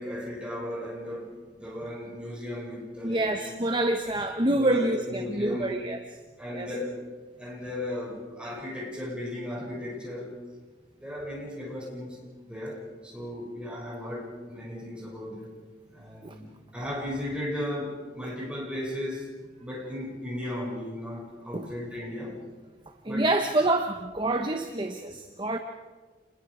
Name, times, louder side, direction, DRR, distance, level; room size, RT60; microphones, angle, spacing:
voice 1, 0.0-3.5 4.5-5.7 6.4-7.0 7.4-10.4 10.9-12.2 12.4-15.5 15.9-22.4 23.1-23.3, left 1 dB, 5° right, -4 dB, 7.2 m, -36 dB
voice 2, 3.0-6.0 6.5-6.7 16.2-16.4 21.5-21.7 23.0-25.6, right 2 dB, 25° right, 5 dB, 1.1 m, -27 dB
28.5 x 21.0 x 5.1 m, 1.3 s
head